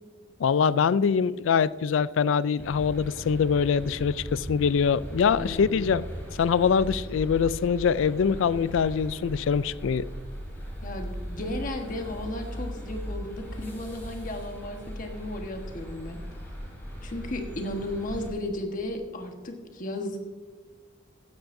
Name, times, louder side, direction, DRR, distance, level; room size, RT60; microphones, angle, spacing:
voice 1, 0.4-6.0 6.4-10.1, left 6 dB, 75° left, 18 dB, 0.3 m, -24 dB
sound 1, 2.6-18.3, equal, 10° left, 3.2 m, -38 dB
voice 2, 5.3-5.9 10.8-16.2 17.0-20.2, left 1 dB, 40° left, 4 dB, 1.3 m, -34 dB
14.5 x 10.5 x 2.6 m, 1.5 s
head